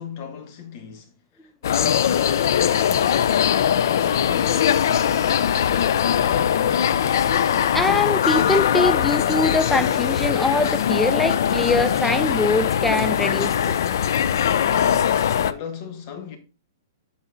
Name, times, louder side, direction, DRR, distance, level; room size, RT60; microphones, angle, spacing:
voice 1, 0.0-3.0 3.8-4.7 15.3-16.4, left 7 dB, 35° left, 1.5 m, -37 dB
sound 1, 1.6-15.5, left 9 dB, 65° left, 0.4 m, -21 dB
voice 2, 7.7-13.6, left 3 dB, 5° left, 0.4 m, -23 dB
sound 2, 10.3-13.4, left 5 dB, 90° left, 1.5 m, -42 dB
12.5 x 4.2 x 2.6 m
hypercardioid pair, 160°, 2 cm